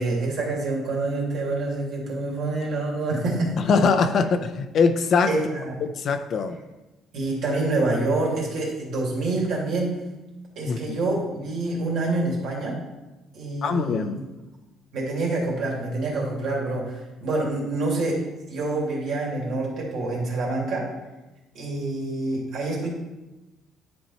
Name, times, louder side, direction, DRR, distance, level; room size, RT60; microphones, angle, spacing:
voice 1, 0.0-3.5 5.3-5.7 7.1-10.0 10.6-12.8 13.3-14.2 14.9-18.2 18.5-20.9 21.5-22.9, right 2 dB, 60° right, -2 dB, 2.6 m, -27 dB
voice 2, 3.6-5.3 5.8-6.6 10.7-11.0 13.6-14.2, left 5 dB, 45° left, 9 dB, 0.5 m, -22 dB
10.5 x 4.5 x 4.2 m, 1.0 s
cardioid pair, 145°, 0 cm